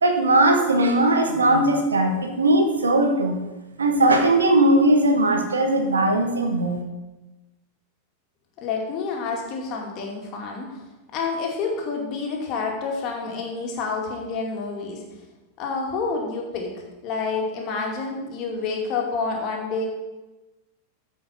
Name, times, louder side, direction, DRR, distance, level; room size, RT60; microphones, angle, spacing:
voice 1, 0.0-3.4 3.8-6.8, right 1 dB, 75° right, 4 dB, 1.3 m, -19 dB
voice 2, 8.6-10.8 11.1-15.0 15.6-19.9, left 4 dB, 40° left, 0 dB, 2.3 m, -28 dB
14.0 x 5.2 x 4.4 m, 1.1 s
figure-of-eight pair, 90°, 0 cm